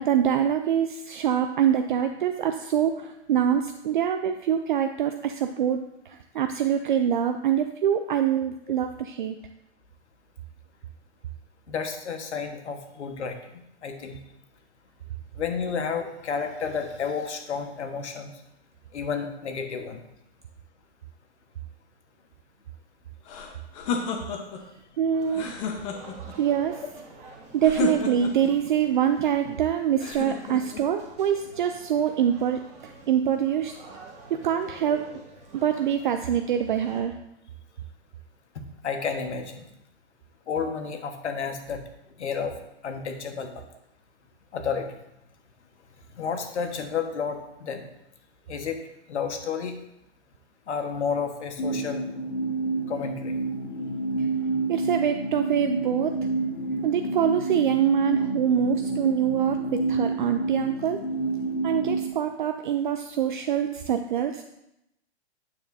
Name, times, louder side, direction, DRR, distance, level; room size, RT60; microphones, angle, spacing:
voice 1, 0.0-9.3 25.0-25.5 26.4-26.8 27.5-33.7 34.3-35.0 35.5-37.1 54.7-56.1 56.8-61.0 61.6-64.4, right 9 dB, 45° right, 6 dB, 0.5 m, -25 dB
voice 2, 11.7-13.4 13.8-14.2 15.4-18.3 18.9-20.0 38.8-39.7 40.5-41.8 42.2-42.6 42.8-43.6 44.5-44.9 46.2-47.9 48.5-48.8 49.1-49.7 50.7-52.0 52.9-53.3, left 6 dB, 80° left, 5 dB, 1.4 m, -31 dB
sound 1, 23.3-24.6 25.3-26.3 27.6-28.5 30.0-30.9, left 5 dB, 30° left, 1.0 m, -31 dB
sound 2, 25.1-37.0, right 2 dB, 20° right, 1.4 m, -48 dB
sound 3, 51.6-62.1, right 2 dB, 55° left, 1.0 m, -29 dB
9.0 x 6.9 x 2.7 m, 0.85 s
hypercardioid pair, 155°, 34 cm